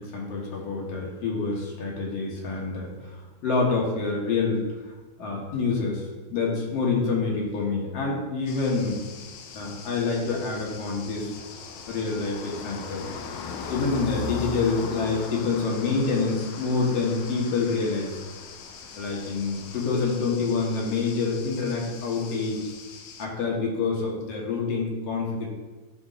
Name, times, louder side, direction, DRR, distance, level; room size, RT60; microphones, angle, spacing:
voice 1, 0.0-4.6 5.2-9.0 9.5-11.3 11.9-13.1 13.7-18.2 19.0-22.7 23.2-25.5, left 4 dB, 60° left, -2 dB, 2.2 m, -27 dB
sound 1, 8.5-23.3, left 5 dB, 90° left, 2.0 m, -40 dB
12.0 x 4.4 x 2.5 m, 1.3 s
omnidirectional pair, 3.4 m